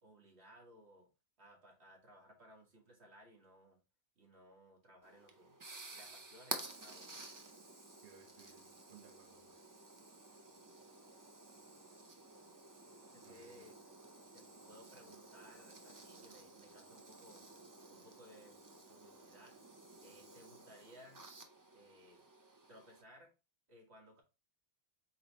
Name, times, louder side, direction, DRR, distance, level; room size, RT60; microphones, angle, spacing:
voice 1, 0.0-1.1 1.4-3.8 4.2-5.6 5.9-7.3 13.0-13.8 14.3-17.5 17.9-18.6 18.9-19.6 20.0-21.2 21.7-22.2 22.7-23.3 23.7-24.2, equal, 85° right, 1.9 m, -61 dB
sound 1, 5.0-23.0, right 2 dB, 25° right, 0.5 m, -52 dB
voice 2, 8.0-9.6 13.2-13.7, right 7 dB, 60° right, 0.7 m, -62 dB
4.1 x 3.0 x 4.0 m
omnidirectional pair, 1.1 m